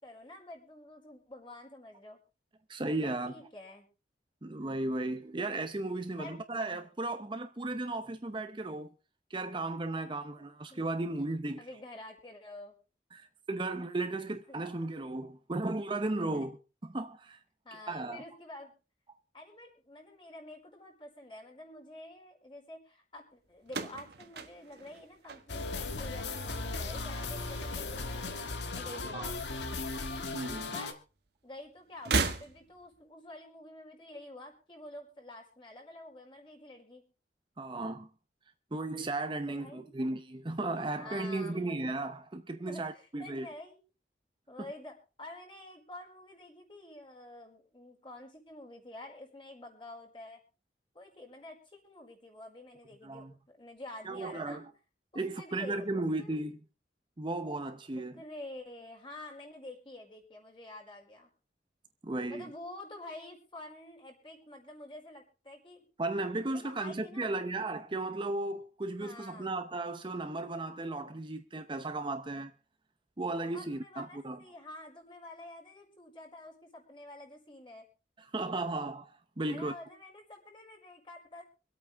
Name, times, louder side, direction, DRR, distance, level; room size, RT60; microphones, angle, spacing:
voice 1, 0.0-2.2 2.9-3.9 6.2-6.4 10.4-10.5 10.7-10.8 11.6-12.8 14.5-14.6 16.3-16.5 17.6-18.7 19.3-28.4 28.7-29.4 30.7-30.9 31.4-37.0 39.5-39.8 41.0-41.9 42.6-43.8 44.5-50.4 50.9-54.6 55.1-56.4 58.1-61.3 62.3-65.9 66.5-67.5 69.0-69.6 73.5-77.9 79.5-81.4, left 1 dB, 30° left, 4.8 m, -48 dB
voice 2, 2.7-3.3 4.4-8.9 9.3-11.7 13.1-16.6 16.8-17.4 17.9-18.2 29.1-29.3 30.3-30.7 37.6-38.1 38.7-43.5 44.6-44.7 53.0-53.3 54.1-54.6 55.2-56.6 57.2-58.2 62.0-62.5 66.0-72.5 73.2-74.4 78.3-79.7, right 2 dB, 30° right, 0.7 m, -35 dB
sound 1, 23.6-26.0 26.3-26.9 27.9-29.0 29.2-29.3 30.5-30.6 31.9-33.0, right 4 dB, 65° right, 1.4 m, -35 dB
sound 2, 25.5-30.9, left 3 dB, 90° left, 1.6 m, -37 dB
25.5 x 8.6 x 3.4 m
head